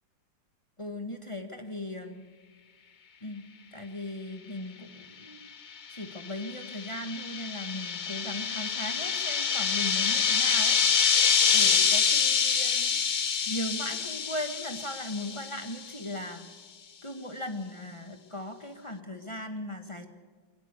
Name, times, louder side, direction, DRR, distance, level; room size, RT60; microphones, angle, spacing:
voice 1, 0.8-2.2 3.2-3.5 3.7-5.4 5.9-13.0 13.5-16.5 17.0-20.1, left 1 dB, 15° left, 6 dB, 1.5 m, -38 dB
sound 1, 6.0-15.8, left 6 dB, 50° left, 0.5 m, -26 dB
22.0 x 19.0 x 6.9 m, 1.5 s
omnidirectional pair, 2.0 m